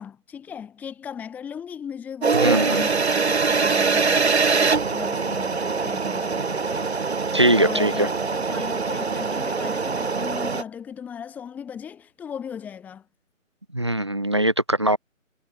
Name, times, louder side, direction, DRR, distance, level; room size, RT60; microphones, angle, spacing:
voice 1, 0.0-6.9 7.5-13.1, left 7 dB, 5° left, 5.6 m, -37 dB
sound 1, 2.2-10.6, right 4 dB, 55° right, 4.7 m, -23 dB
voice 2, 2.3-2.8 7.3-8.1 13.7-15.0, right 1 dB, 20° right, 0.8 m, -21 dB
figure-of-eight pair, 175°, 40 cm